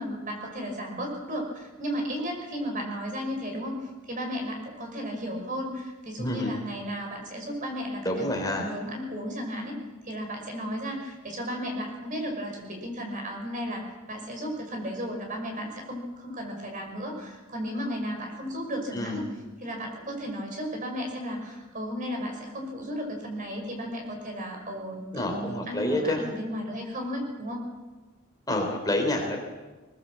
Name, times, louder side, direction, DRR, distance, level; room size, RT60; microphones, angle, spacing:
voice 1, 0.0-3.8 4.1-9.7 10.0-19.2 19.6-27.6, equal, 40° right, 2 dB, 5.7 m, -34 dB
voice 2, 6.2-6.5 8.0-8.7 18.9-19.2 25.1-26.2 28.5-29.4, left 1 dB, 20° left, 1 dB, 3.4 m, -28 dB
21.0 x 20.0 x 7.5 m, 1.2 s
head